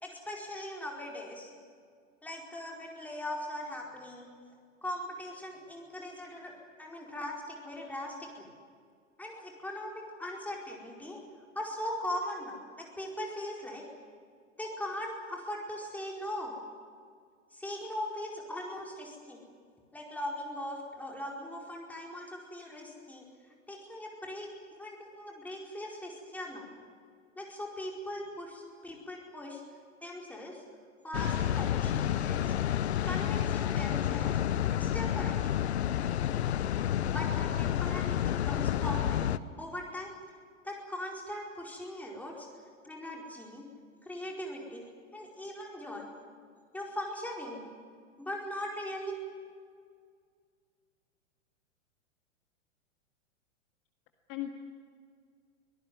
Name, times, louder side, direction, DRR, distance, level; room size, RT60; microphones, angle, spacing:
voice 1, 0.0-1.5 2.2-4.3 4.8-6.5 6.8-8.5 9.2-11.2 11.5-13.8 14.6-16.6 17.5-19.4 19.9-23.3 23.7-26.7 27.4-29.6 30.0-30.6 31.0-32.5 33.0-34.4 34.7-35.5 37.1-39.3 39.6-40.1 40.6-42.5 42.8-43.7 44.0-44.8 45.1-46.1 46.7-47.6 48.2-49.2, left 1 dB, 5° left, -1 dB, 4.7 m, -40 dB
voice 2, 23.0-23.1 28.3-28.4 42.3-42.4 49.3-49.5 54.3-54.5, left 14 dB, 35° left, 4 dB, 1.8 m, -40 dB
sound 1, 31.1-39.4, left 10 dB, 60° left, 0.9 m, -30 dB
24.5 x 17.5 x 9.7 m, 2.1 s
figure-of-eight pair, 100°, 38 cm